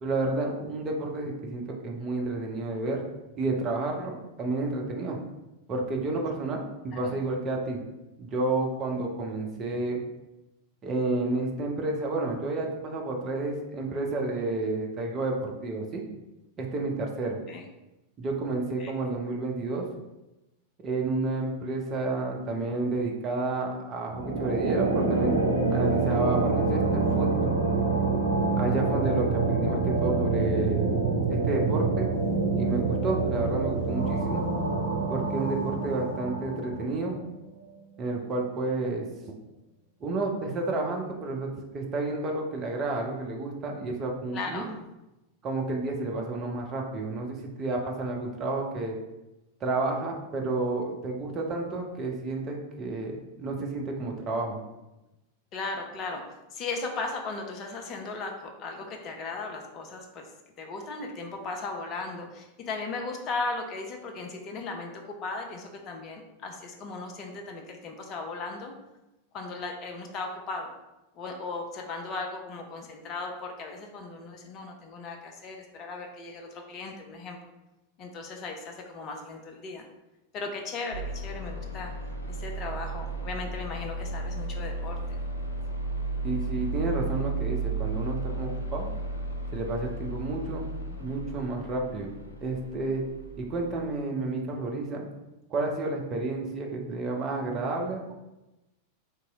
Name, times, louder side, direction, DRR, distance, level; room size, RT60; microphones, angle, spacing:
voice 1, 0.0-3.0 3.4-5.2 5.7-7.8 8.2-10.0 10.8-16.1 16.6-17.4 18.2-19.8 20.8-25.4 25.7-27.5 28.6-32.1 32.6-34.5 35.1-37.2 38.0-39.1 40.0-44.6 45.4-49.0 49.6-54.6 86.2-88.9 89.5-93.0 93.4-95.1 95.5-98.1, right 2 dB, 30° right, 0 dB, 0.7 m, -31 dB
sound 1, 24.1-37.2, right 3 dB, 75° right, 0.6 m, -26 dB
voice 2, 44.3-44.7 55.5-56.2 56.5-60.3 60.6-68.7 69.3-70.7 71.2-77.4 78.0-79.8 80.3-81.9 82.3-85.2, left 3 dB, 35° left, 3 dB, 0.5 m, -37 dB
sound 2, 80.9-94.0, right 2 dB, 85° left, 0.4 m, -34 dB
3.0 x 2.9 x 3.5 m, 0.98 s
figure-of-eight pair, 90°, 0 cm